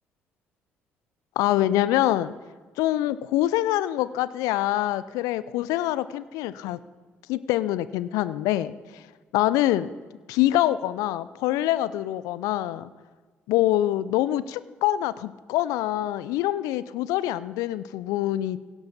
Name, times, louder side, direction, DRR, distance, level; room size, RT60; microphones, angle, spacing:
voice 1, 1.4-2.3 2.8-6.8 7.3-9.0 9.3-9.9 10.3-12.9 13.5-18.6, left 14 dB, 65° left, 17 dB, 0.5 m, -25 dB
17.0 x 11.0 x 4.1 m, 1.4 s
figure-of-eight pair, 45°, 6 cm